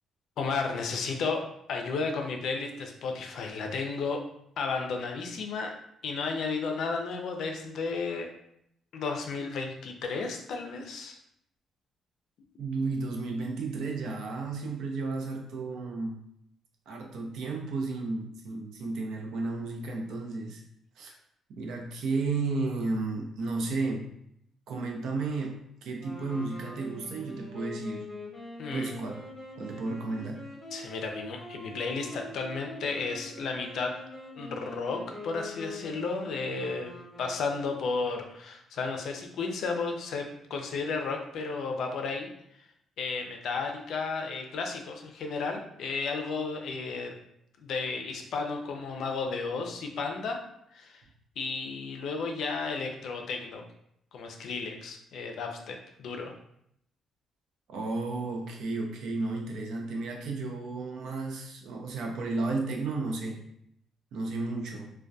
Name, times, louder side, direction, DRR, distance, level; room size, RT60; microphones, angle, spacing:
voice 1, 0.4-1.4 1.7-4.2 4.6-5.7 6.0-8.3 8.9-11.2 21.0-21.2 28.6-28.9 30.7-33.9 34.4-36.9 37.2-42.3 43.0-47.1 47.6-50.4 50.7-51.0 51.4-53.6 54.1-56.3, left 4 dB, 70° left, 3 dB, 0.4 m, -33 dB
voice 2, 12.6-16.2 16.9-20.6 21.0-21.1 21.5-24.1 24.7-28.0 28.7-29.1 29.6-30.4 57.7-63.4 64.1-64.9, right 3 dB, 80° right, 1 dB, 0.5 m, -33 dB
sound 1, 26.0-37.8, left 1 dB, 25° left, 0.8 m, -44 dB
2.2 x 2.1 x 2.6 m, 0.74 s
cardioid pair, 90°, 0 cm